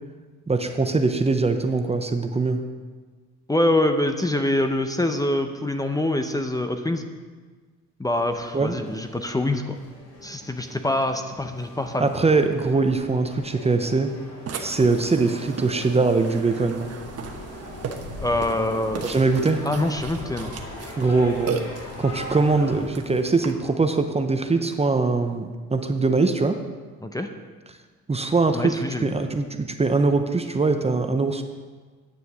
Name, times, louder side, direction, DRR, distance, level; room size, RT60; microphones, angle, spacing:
voice 1, 0.5-2.6 8.5-8.8 12.0-14.1 14.6-16.9 19.0-19.7 21.0-21.6 22.0-26.6 28.1-29.5 29.8-31.4, right 3 dB, 20° right, 7 dB, 0.7 m, -22 dB
voice 2, 3.5-7.1 8.0-9.7 10.2-12.1 18.2-19.0 19.7-20.5 27.0-27.3 28.5-29.1, left 1 dB, 10° left, 7 dB, 0.7 m, -25 dB
sound 1, 8.1-22.9, left 1 dB, 55° left, 3.3 m, -41 dB
Burping eructation, 14.5-23.5, right 5 dB, 55° right, 1.1 m, -36 dB
9.5 x 6.8 x 6.1 m, 1.4 s
cardioid pair, 90°, 30 cm